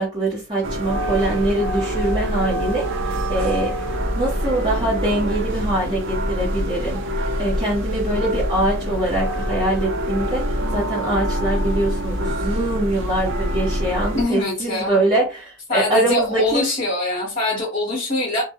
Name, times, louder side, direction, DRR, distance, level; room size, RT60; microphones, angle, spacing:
voice 1, 0.0-16.7, right 1 dB, 25° right, -6 dB, 0.8 m, -23 dB
sound 1, 0.6-14.2, equal, 65° right, 0.5 m, -25 dB
voice 2, 14.1-15.0 15.7-18.4, left 2 dB, 35° left, -3 dB, 0.9 m, -23 dB
2.3 x 2.0 x 2.7 m, 0.31 s
head